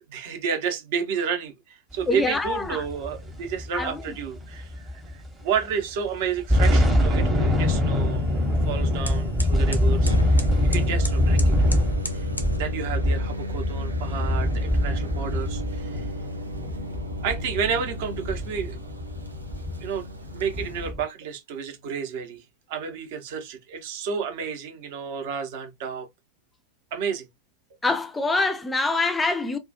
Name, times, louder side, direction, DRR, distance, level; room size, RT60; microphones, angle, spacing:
voice 1, 0.1-8.3 8.7-10.4 10.7-11.5 12.1-12.3 12.5-16.0 17.2-18.8 19.8-20.1 20.3-22.4 22.7-26.1 26.9-27.3, right 7 dB, 50° right, 0.7 m, -31 dB
voice 2, 2.1-2.8 3.7-4.0 27.8-29.6, left 3 dB, 10° left, 0.4 m, -25 dB
sound 1, 2.5-5.3 5.6-5.7 6.2-21.0, left 1 dB, 15° right, 0.8 m, -24 dB
sound 2, 5.8-12.6, left 1 dB, 85° left, 0.4 m, -39 dB
sound 3, 10.0-20.9, left 1 dB, 85° right, 0.5 m, -36 dB
2.3 x 2.2 x 2.6 m
figure-of-eight pair, 90°, 0 cm